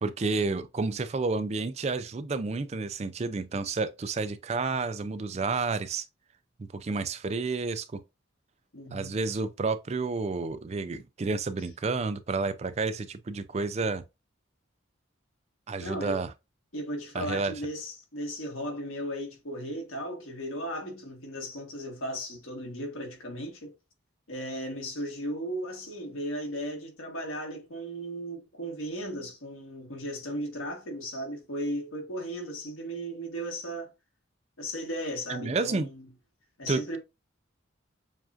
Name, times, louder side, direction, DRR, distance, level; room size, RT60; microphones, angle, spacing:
voice 1, 0.0-6.0 6.6-8.0 8.9-14.0 15.7-16.3 17.1-17.5 35.3-35.9 36.7-37.0, right 3 dB, 30° right, 0.3 m, -30 dB
voice 2, 8.7-9.2 15.8-16.2 16.7-23.7 24.3-33.9 34.6-36.0 36.6-37.0, equal, 85° left, 1.6 m, -36 dB
7.2 x 2.4 x 2.5 m
head